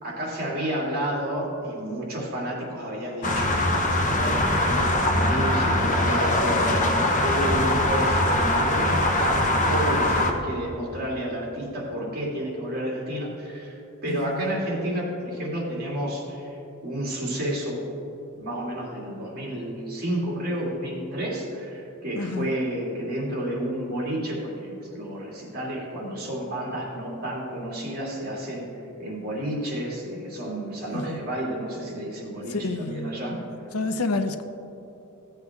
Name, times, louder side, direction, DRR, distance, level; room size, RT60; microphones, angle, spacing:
voice 1, 0.0-16.6 16.8-17.8 18.4-28.7 29.0-33.5, right 1 dB, 45° right, -4 dB, 2.6 m, -31 dB
sound 1, 3.2-10.3, left 1 dB, 35° left, 0.9 m, -22 dB
voice 2, 14.1-14.4 22.2-22.5 30.9-31.2 32.5-33.1 33.7-34.4, left 3 dB, 85° left, 9 dB, 0.7 m, -29 dB
15.5 x 7.9 x 3.6 m, 2.9 s
head